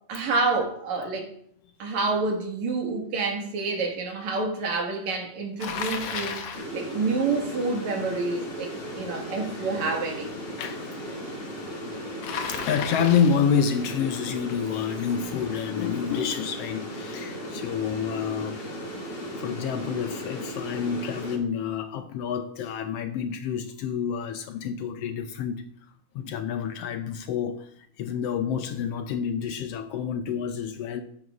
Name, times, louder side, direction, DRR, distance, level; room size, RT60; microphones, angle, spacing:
voice 1, 0.1-1.3 1.8-8.7 9.0-10.3, right 3 dB, 70° right, 1 dB, 3.1 m, -28 dB
Bicycle, 5.6-6.7 12.2-13.5, left 6 dB, 60° left, 1.8 m, -33 dB
sound 1, 6.5-21.4, equal, 40° left, 2.9 m, -36 dB
voice 2, 10.6-11.0 12.5-18.7 19.0-25.6 26.1-27.7 28.0-31.0, left 7 dB, 85° left, 8 dB, 1.3 m, -28 dB
13.5 x 10.5 x 2.5 m, 0.68 s
omnidirectional pair, 3.3 m